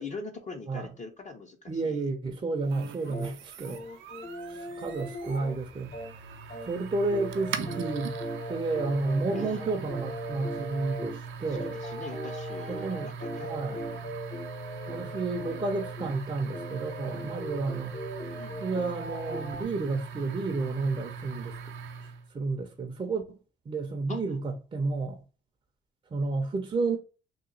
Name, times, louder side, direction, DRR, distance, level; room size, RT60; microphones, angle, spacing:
voice 1, 0.0-2.0 9.3-9.8 11.5-14.2 18.3-18.8 24.1-24.4, left 3 dB, 35° left, 0.6 m, -43 dB
voice 2, 1.7-3.8 4.5-5.9 6.6-8.2 8.5-11.7 12.7-13.1 13.4-13.8 14.9-18.0 18.6-21.6 22.3-23.4 23.7-25.2 26.1-27.0, right 3 dB, 25° right, 0.5 m, -31 dB
sound 1, 2.7-22.3, right 6 dB, 75° right, 0.5 m, -41 dB
sound 2, 3.1-6.8 7.1-16.2 16.4-19.6, equal, 55° left, 1.1 m, -39 dB
2.9 x 2.2 x 3.8 m
cardioid pair, 90°, 20 cm